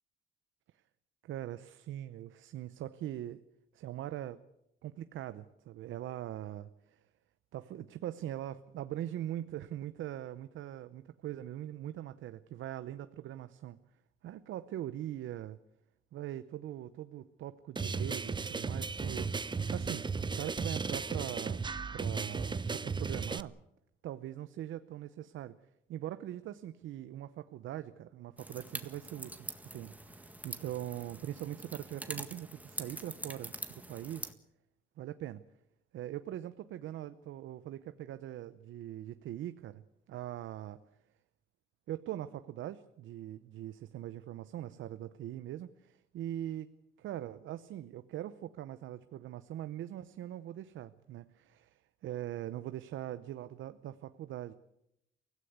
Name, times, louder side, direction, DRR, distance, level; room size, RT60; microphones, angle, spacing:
voice 1, 1.2-3.4 3.7-4.4 4.8-7.0 7.5-13.8 14.2-15.6 16.1-20.1 20.3-23.5 24.0-25.6 25.9-29.5 29.7-34.3 35.0-35.4 35.9-40.8 41.9-46.7 47.0-54.5, right 12 dB, 80° right, 12 dB, 0.8 m, -42 dB
sound 1, 17.8-23.4, right 4 dB, 25° right, 0.8 m, -35 dB
sound 2, 28.4-34.3, right 1 dB, 10° right, 1.8 m, -44 dB
23.5 x 16.5 x 8.2 m, 0.84 s
cardioid pair, 90°, 20 cm